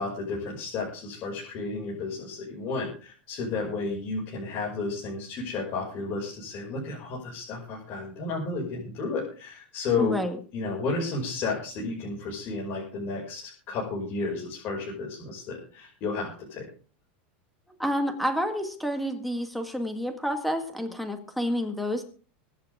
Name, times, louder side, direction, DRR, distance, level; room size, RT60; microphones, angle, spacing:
voice 1, 0.0-10.2 10.5-16.7, left 3 dB, 35° left, -4 dB, 6.1 m, -32 dB
voice 2, 10.0-10.4 17.8-22.0, equal, ahead, 6 dB, 1.9 m, -29 dB
24.0 x 10.0 x 3.7 m, 0.39 s
supercardioid pair, 155°, 6 cm